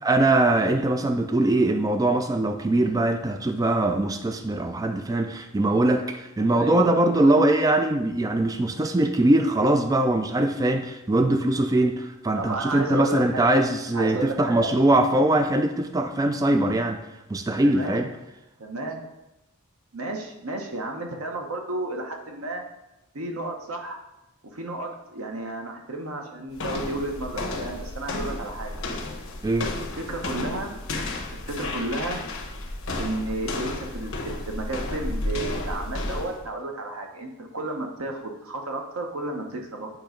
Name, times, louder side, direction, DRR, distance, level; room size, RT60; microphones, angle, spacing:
voice 1, 0.0-17.0 17.3-18.1 29.4-29.7, right 1 dB, 15° right, 6 dB, 0.3 m, -22 dB
voice 2, 6.5-7.4 12.4-13.6 13.9-14.7 17.6-18.0 18.6-19.1 19.9-22.6 23.1-24.0 24.5-28.7 29.8-30.8 31.3-32.2 33.0-39.9, right 2 dB, 85° right, 2 dB, 1.1 m, -32 dB
sound 1, 26.5-36.4, left 2 dB, 65° left, 1.1 m, -32 dB
8.6 x 3.1 x 5.1 m, 0.93 s
head